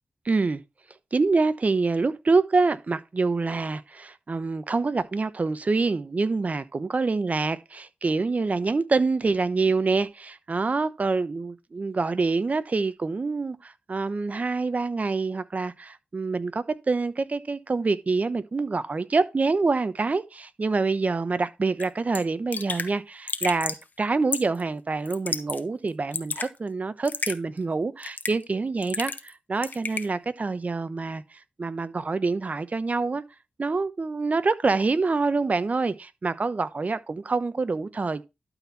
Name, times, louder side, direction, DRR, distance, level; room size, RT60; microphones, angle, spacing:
voice 1, 0.2-0.6 1.1-33.2 33.6-38.2, right 3 dB, 50° right, 1.0 m, -26 dB
Raindrop / Drip, 21.8-21.9 22.1-22.2 22.5-22.9 23.3-23.8 24.3-24.6 25.1-25.6 25.9-26.5 27.1-27.4 28.0-28.4 28.8-29.3 29.6-30.1, left 4 dB, 65° left, 1.2 m, -31 dB
12.0 x 4.5 x 4.2 m
cardioid pair, 50°, 3 cm